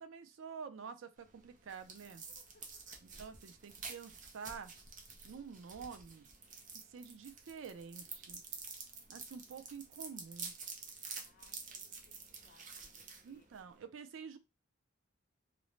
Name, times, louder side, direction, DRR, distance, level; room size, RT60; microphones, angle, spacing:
voice 1, 0.0-2.2 3.0-4.7 5.2-6.3 6.7-8.4 9.1-10.5 13.2-14.4, right 6 dB, 90° right, 0.4 m, -48 dB
sound 1, 1.2-13.8, right 5 dB, 40° right, 0.5 m, -49 dB
voice 2, 2.3-2.8 5.3-5.4 11.2-13.5, left 5 dB, 50° left, 0.5 m, -69 dB
2.5 x 2.0 x 3.0 m
head